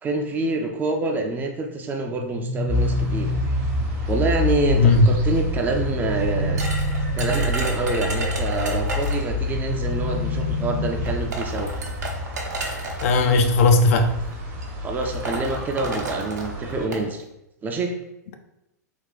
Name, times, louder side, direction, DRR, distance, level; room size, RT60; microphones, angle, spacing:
voice 1, 0.0-3.3 4.1-6.6 7.2-11.7 14.8-17.2 17.6-17.9, right 3 dB, 20° right, 3 dB, 0.5 m, -26 dB
sound 1, 2.0-4.0 5.7-7.7 9.4-11.4, left 1 dB, 80° left, 1.0 m, -30 dB
sound 2, 2.7-16.9, left 2 dB, 40° right, 0.9 m, -28 dB
voice 2, 4.8-5.1 13.0-14.2, left 3 dB, 50° left, 6 dB, 0.4 m, -16 dB
sound 3, 6.6-9.3 10.4-10.5 11.1-13.2 14.1-14.3 14.6-14.7 15.0-17.0, right 2 dB, 70° right, 0.8 m, -32 dB
3.5 x 2.3 x 3.7 m, 0.87 s
figure-of-eight pair, 100°, 10 cm